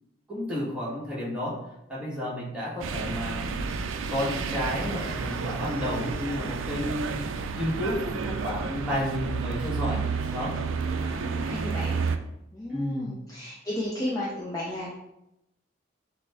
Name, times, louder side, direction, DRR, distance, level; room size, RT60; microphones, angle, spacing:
voice 1, 0.3-1.5 1.9-3.7 4.1-10.0 10.3-10.5 12.7-13.1, left 1 dB, 5° right, -7 dB, 1.3 m, -31 dB
sound 1, 2.8-12.2, right 5 dB, 90° right, 0.4 m, -31 dB
voice 2, 11.0-12.0 12.5-14.9, left 1 dB, 20° left, -5 dB, 0.5 m, -34 dB
6.5 x 2.2 x 3.4 m, 0.86 s
head